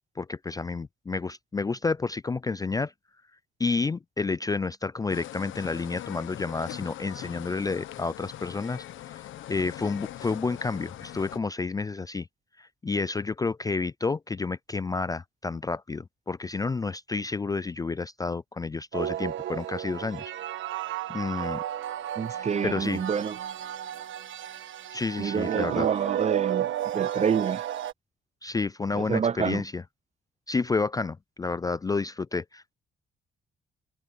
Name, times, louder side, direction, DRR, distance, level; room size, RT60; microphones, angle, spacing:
voice 1, 0.2-2.9 3.6-8.8 9.1-9.2 9.5-12.3 12.6-20.2 20.6-20.7 21.1-21.6 22.3-23.0 24.9-25.9 28.4-29.8 30.5-32.7, left 4 dB, 20° left, 0.3 m, -30 dB
sound 1, 5.1-11.4, left 13 dB, 80° left, 1.1 m, -41 dB
sound 2, 18.9-27.9, right 12 dB, 75° right, 1.4 m, -32 dB
voice 2, 22.2-23.4 25.2-26.7 26.9-27.6 29.0-29.6, right 6 dB, 35° right, 0.7 m, -28 dB
cardioid pair, 90°, 20 cm